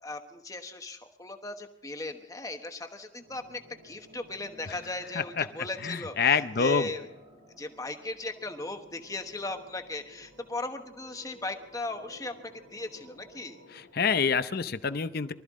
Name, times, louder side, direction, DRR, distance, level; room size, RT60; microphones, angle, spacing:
voice 1, 0.0-6.2 6.6-7.1 7.6-13.6, left 2 dB, 15° left, 6 dB, 1.1 m, -37 dB
sound 1, 3.2-13.9, equal, 85° right, 5.3 m, -55 dB
voice 2, 5.1-5.5 5.8-6.9 13.7-15.3, left 6 dB, 50° left, 12 dB, 0.6 m, -27 dB
24.0 x 13.5 x 3.7 m, 0.94 s
head